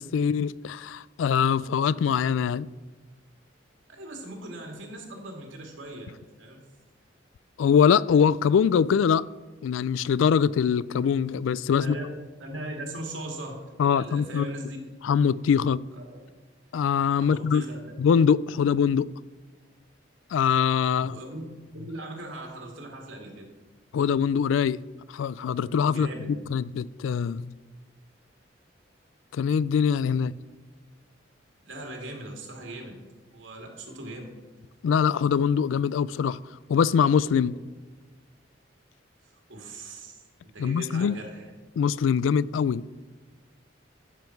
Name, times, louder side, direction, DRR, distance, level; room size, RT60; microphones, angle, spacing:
voice 1, 0.0-2.7 7.6-9.2 9.6-12.0 13.8-14.5 15.0-15.8 16.7-17.6 18.0-19.1 20.3-21.2 23.9-24.8 25.1-27.5 29.3-30.3 34.8-36.4 36.7-37.6 40.6-41.1 41.8-42.8, left 7 dB, 85° left, 0.3 m, -23 dB
voice 2, 3.9-6.6 11.8-12.0 12.4-13.6 13.9-14.8 16.0-16.1 17.2-17.9 21.0-21.4 21.7-23.4 25.9-26.3 31.6-33.0 33.3-34.3 37.4-37.5 39.5-40.2 40.5-41.5, right 1 dB, 85° right, 2.3 m, -39 dB
13.5 x 7.1 x 4.6 m
head